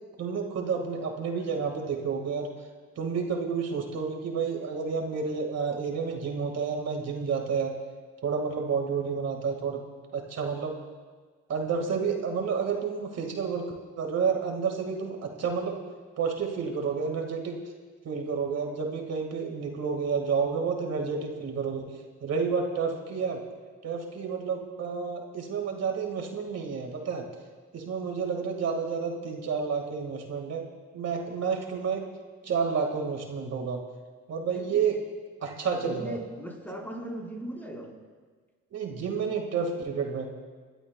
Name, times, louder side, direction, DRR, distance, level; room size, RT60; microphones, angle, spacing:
voice 1, 0.2-2.5 3.0-7.7 8.2-9.8 10.1-10.8 11.5-15.8 16.2-17.6 18.0-23.4 23.8-27.3 27.7-30.6 30.9-32.1 32.4-33.8 34.3-35.0 35.4-36.2 38.7-40.3, right 5 dB, 55° right, 3 dB, 1.9 m, -30 dB
voice 2, 34.5-34.9 35.7-38.0, right 1 dB, 5° left, -2 dB, 4.2 m, -39 dB
30.0 x 12.0 x 2.3 m, 1.5 s
cardioid pair, 90°, 30 cm